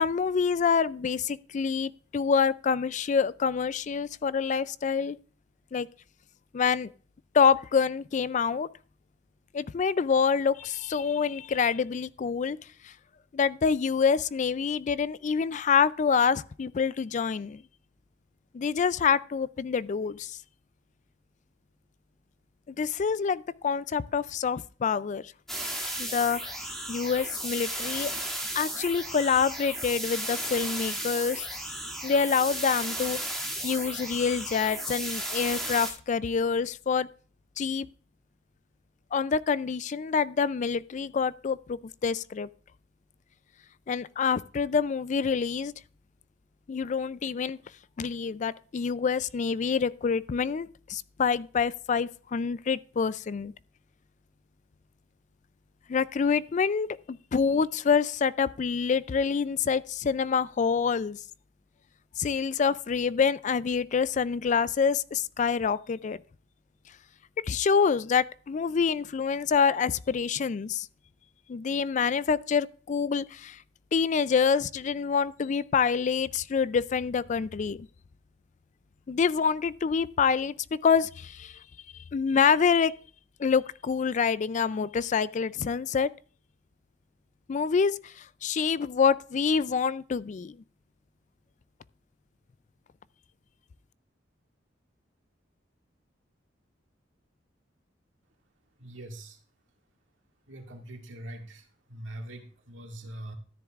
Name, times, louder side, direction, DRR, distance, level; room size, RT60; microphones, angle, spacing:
voice 1, 0.0-5.2 5.7-5.9 6.5-6.9 7.3-8.7 9.5-12.6 12.8-12.9 13.3-17.6 18.5-20.4 22.7-25.2 26.0-26.5 26.9-28.1 28.5-31.5 32.0-33.2 33.6-37.1 37.6-37.9 39.1-42.5 43.9-45.7 46.7-47.6 48.0-53.5 55.9-61.2 62.2-66.2 67.5-70.9 71.5-73.6 73.9-77.9 79.1-81.6 82.1-82.9 83.4-86.1 87.5-90.6, left 6 dB, 40° left, 0.3 m, -26 dB
sound 1, 25.5-35.9, right 1 dB, ahead, 2.4 m, -34 dB
voice 2, 98.8-99.4 100.5-103.3, right 1 dB, 85° right, 2.1 m, -43 dB
13.5 x 10.0 x 2.4 m
head